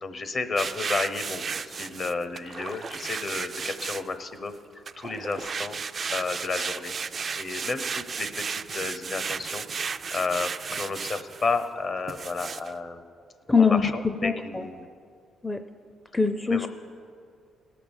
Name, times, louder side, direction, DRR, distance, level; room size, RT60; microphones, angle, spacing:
voice 1, 0.0-4.6 5.0-5.8 6.1-6.9 7.3-9.6 10.1-13.0 13.6-14.9 16.5-16.7, left 4 dB, 45° left, 10 dB, 0.9 m, -32 dB
sound 1, 0.6-4.3 4.9-11.6 12.1-12.7, right 5 dB, 40° right, 0.3 m, -34 dB
voice 2, 13.5-14.7 15.4-15.6 16.1-16.7, left 5 dB, 15° left, 8 dB, 0.5 m, -23 dB
18.0 x 6.0 x 7.2 m, 2.3 s
cardioid pair, 90°, 0 cm